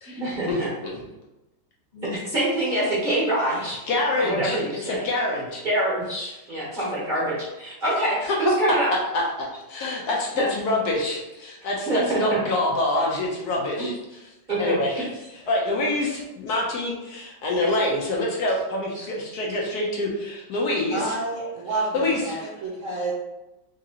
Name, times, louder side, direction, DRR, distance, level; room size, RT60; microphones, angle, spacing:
voice 1, 0.1-0.7 1.9-3.8 4.2-5.0 5.6-8.9 10.3-10.5 11.8-12.2 13.8-13.9 14.5-15.1 17.6-17.7 18.9-19.0, right 1 dB, 35° right, -8 dB, 0.9 m, -26 dB
voice 2, 3.9-5.6 6.8-6.9 8.2-8.4 9.1-13.9 14.6-15.0 15.5-21.2 21.9-22.4, left 2 dB, 70° left, -2 dB, 1.1 m, -26 dB
voice 3, 20.9-23.1, right 2 dB, 60° right, -5 dB, 0.9 m, -29 dB
3.6 x 2.9 x 2.8 m, 0.99 s
omnidirectional pair, 1.9 m